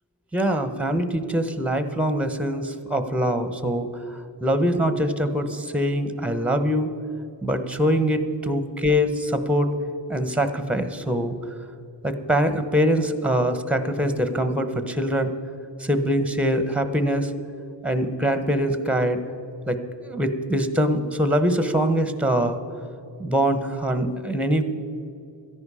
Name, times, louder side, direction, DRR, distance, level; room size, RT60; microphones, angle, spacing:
voice 1, 0.3-6.9 7.4-9.7 10.1-11.4 12.0-15.3 15.8-17.3 17.8-19.2 19.7-22.6 23.2-24.6, equal, 5° right, 9 dB, 1.0 m, -23 dB
13.5 x 10.5 x 4.9 m, 2.7 s
cardioid pair, 55°, 45 cm